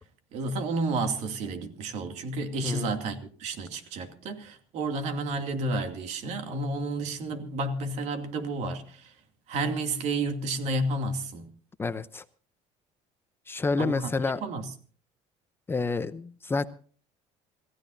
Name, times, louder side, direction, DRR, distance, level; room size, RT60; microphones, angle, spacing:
voice 1, 0.3-9.1 9.5-11.5 13.8-14.1 14.4-14.6, right 2 dB, 65° right, 2.5 m, -31 dB
voice 2, 2.6-2.9 11.8-12.2 13.5-14.4 15.7-16.7, left 4 dB, 15° left, 0.7 m, -29 dB
27.5 x 15.5 x 2.7 m
cardioid pair, 135°, 13 cm